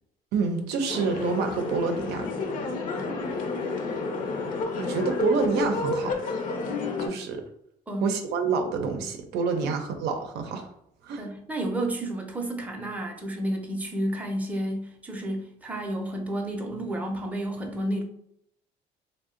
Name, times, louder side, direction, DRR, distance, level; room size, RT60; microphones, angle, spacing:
voice 1, 0.3-2.3 4.8-6.1 7.0-7.4 8.0-10.7 11.0-11.2, right 5 dB, 80° right, 0.5 m, -27 dB
sound 1, 0.9-7.1, left 3 dB, 55° left, 0.6 m, -30 dB
voice 2, 11.2-18.0, right 1 dB, 10° right, 0.5 m, -31 dB
2.6 x 2.1 x 3.6 m
cardioid pair, 110°, 17 cm